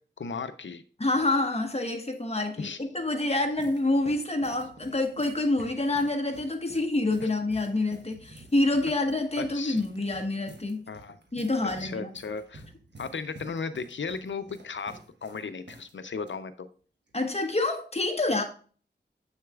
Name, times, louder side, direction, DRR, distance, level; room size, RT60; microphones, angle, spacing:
voice 1, 0.2-0.8 2.6-2.8 7.2-7.3 9.4-9.8 10.9-11.2 11.8-12.6 13.0-14.9 15.2-16.7, left 5 dB, 85° left, 0.6 m, -35 dB
voice 2, 1.0-10.8 11.3-12.1 17.1-18.4, left 2 dB, 35° left, 1.2 m, -27 dB
sound 1, 3.0-16.3 17.1-17.4, right 2 dB, 65° right, 1.3 m, -51 dB
7.8 x 6.4 x 2.4 m
wide cardioid pair, 50°, 19 cm